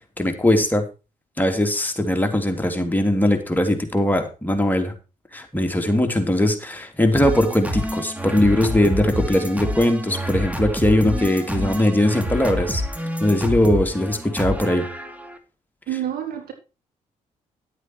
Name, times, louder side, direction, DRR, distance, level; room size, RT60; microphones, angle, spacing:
voice 1, 0.2-0.8 1.4-4.9 5.3-12.8 13.2-14.9, left 1 dB, 10° left, 4 dB, 3.2 m, -20 dB
sound 1, 7.2-15.4, equal, 10° right, 2.6 m, -28 dB
voice 2, 15.9-16.5, right 11 dB, 70° right, 4 dB, 3.7 m, -28 dB
12.0 x 8.2 x 4.7 m, 0.31 s
supercardioid pair, 55°, 16 cm